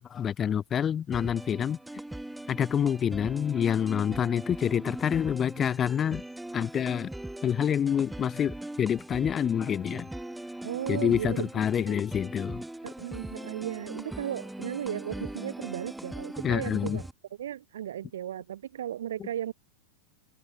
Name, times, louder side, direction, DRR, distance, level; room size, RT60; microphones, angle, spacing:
voice 1, 0.0-1.8 2.5-6.2 6.5-7.1 7.4-10.1 10.9-12.6 16.4-17.0 19.2-19.3, left 8 dB, 25° left, 0.4 m, -27 dB
sound 1, 1.1-17.1, right 1 dB, 5° right, 0.7 m, -40 dB
voice 2, 10.6-11.5 11.8-12.1 12.8-17.0 17.4-19.5, right 11 dB, 60° right, 0.8 m, -35 dB
figure-of-eight pair, 90°, 0 cm